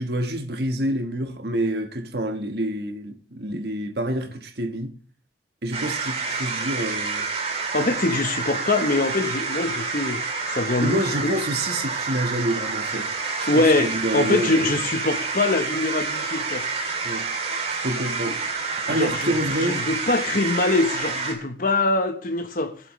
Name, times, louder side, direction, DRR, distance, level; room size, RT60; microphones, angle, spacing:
voice 1, 0.0-5.0 5.6-7.3 10.8-13.1 13.4-14.8 17.0-17.3 17.7-18.4 18.7-19.8, right 1 dB, 65° right, 1.4 m, -27 dB
sound 1, 5.7-21.3, right 4 dB, 35° right, 2.4 m, -28 dB
voice 2, 7.7-11.4 13.5-16.7 18.3-18.4 18.9-19.3 19.6-22.8, left 2 dB, 50° left, 1.1 m, -23 dB
22.0 x 7.7 x 3.2 m
head